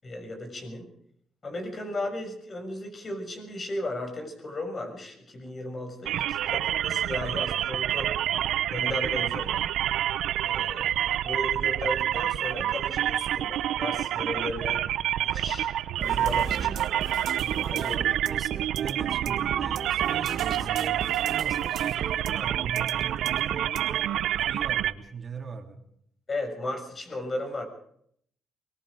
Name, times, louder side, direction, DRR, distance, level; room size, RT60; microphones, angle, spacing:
voice 1, 0.0-0.9 1.4-8.1 8.7-9.7 10.4-14.8 15.2-15.7 16.0-16.8 17.4-18.0 26.3-27.6, left 1 dB, 35° left, 5 dB, 6.6 m, -35 dB
sound 1, 6.1-24.9, right 12 dB, 80° right, 0.8 m, -28 dB
sound 2, 16.0-24.0, right 7 dB, 65° right, 1.6 m, -36 dB
voice 2, 17.4-25.8, right 5 dB, 40° right, 3 dB, 3.4 m, -41 dB
23.0 x 22.0 x 5.1 m, 0.68 s
cardioid pair, 90°, 0 cm